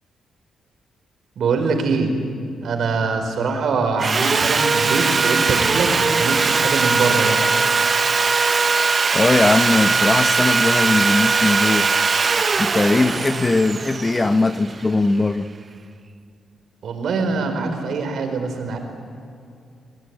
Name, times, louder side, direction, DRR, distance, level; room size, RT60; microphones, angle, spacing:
voice 1, 1.4-2.1 2.6-7.4 16.8-18.8, right 4 dB, 70° right, 4.7 m, -23 dB
Sawing, 4.0-15.1, right 4 dB, 40° right, 0.9 m, -20 dB
voice 2, 9.1-11.9 12.6-15.5, left 2 dB, 25° left, 0.9 m, -19 dB
28.0 x 19.0 x 9.6 m
cardioid pair, 95°, 0 cm